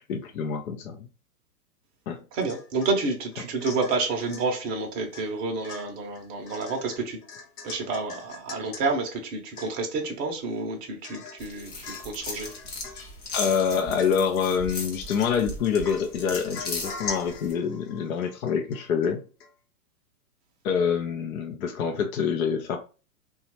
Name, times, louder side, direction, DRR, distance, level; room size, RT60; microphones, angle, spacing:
voice 1, 0.1-1.1 2.1-2.2 13.3-19.2 20.6-22.8, left 7 dB, 60° left, 0.6 m, -26 dB
voice 2, 2.3-7.2 7.6-12.5, right 3 dB, 20° right, 0.6 m, -29 dB
Domestic sounds home sounds / Chink clink / Drip, 2.4-3.0 3.3-4.5 5.1-5.3 5.6-8.9 9.2-9.3 9.6-10.1 10.5-10.6 11.0-11.5 11.8-12.2 12.4-13.1 13.7-14.4 14.9-15.5 15.8-19.1 19.4-19.5, left 5 dB, 80° left, 0.9 m, -42 dB
sound 1, 11.4-17.5, left 2 dB, 20° left, 0.7 m, -37 dB
2.9 x 2.3 x 2.9 m
hypercardioid pair, 120°, 47 cm